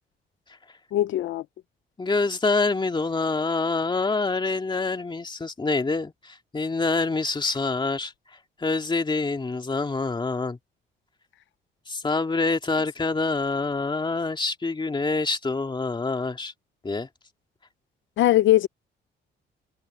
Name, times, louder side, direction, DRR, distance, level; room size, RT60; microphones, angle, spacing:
voice 1, 0.9-1.4 18.2-18.7, left 14 dB, 75° left, 0.6 m, -20 dB
voice 2, 2.0-8.1 8.6-10.6 11.9-16.5 16.8-17.1, left 3 dB, 25° left, 2.5 m, -26 dB
cardioid pair, 90°, 20 cm